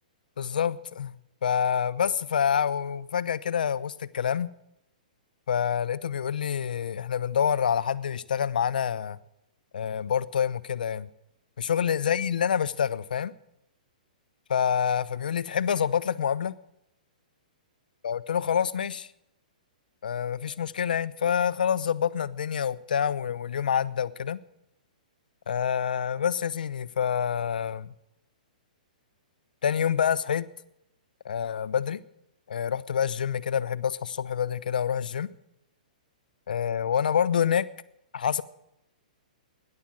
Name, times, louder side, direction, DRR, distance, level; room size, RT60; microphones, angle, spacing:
voice 1, 0.4-1.1 1.4-4.5 5.5-9.2 9.7-11.1 11.6-13.3 14.5-16.5 18.0-19.1 20.0-24.4 25.5-27.9 29.6-30.5 31.2-32.0 32.5-35.3 36.5-37.7 38.1-38.4, left 8 dB, 80° left, 15 dB, 0.9 m, -27 dB
17.0 x 11.0 x 7.6 m, 0.83 s
hypercardioid pair, 150°, 5 cm